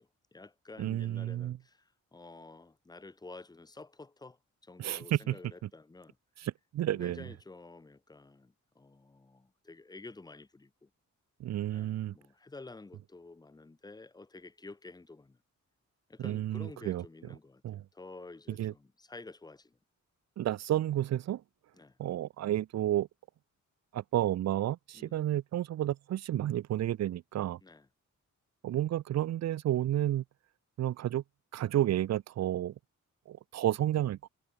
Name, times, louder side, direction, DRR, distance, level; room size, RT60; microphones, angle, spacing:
voice 1, 0.0-6.2 6.9-10.9 11.7-15.4 16.1-19.8 21.7-22.0 24.9-25.2 27.6-27.9, left 3 dB, 15° left, 0.7 m, -50 dB
voice 2, 0.8-1.6 4.8-5.4 6.4-7.2 11.4-12.2 16.2-17.0 17.6-17.8 18.6-18.7 20.4-21.4 22.0-23.1 23.9-27.6 28.6-30.2 30.8-31.2 31.5-32.7 33.3-34.3, right 12 dB, 60° right, 0.4 m, -31 dB
wide cardioid pair, 155°, 31 cm